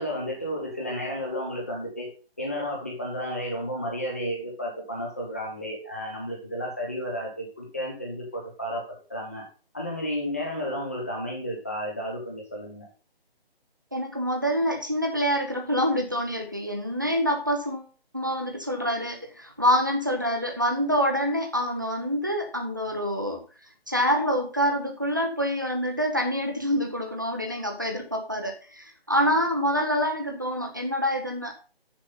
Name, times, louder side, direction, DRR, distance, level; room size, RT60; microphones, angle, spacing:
voice 1, 0.0-2.1 2.4-9.4 9.7-12.9, equal, 15° left, -1 dB, 1.1 m, -32 dB
voice 2, 13.9-23.4 23.9-31.5, equal, 20° right, 4 dB, 0.8 m, -26 dB
7.3 x 7.3 x 5.4 m, 0.37 s
figure-of-eight pair, 180°, 31 cm